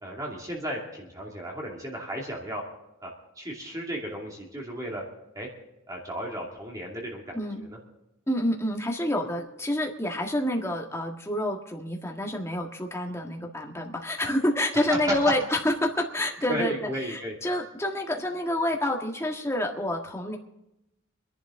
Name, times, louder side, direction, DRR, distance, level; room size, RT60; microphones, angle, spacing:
voice 1, 0.0-2.6 3.0-3.1 3.4-5.0 5.3-5.5 5.9-7.3 14.7-15.3 16.5-17.3, right 1 dB, 15° right, -2 dB, 2.4 m, -33 dB
voice 2, 8.3-16.7 17.1-20.4, left 1 dB, 15° left, 0 dB, 1.6 m, -28 dB
26.0 x 11.0 x 3.7 m, 0.89 s
head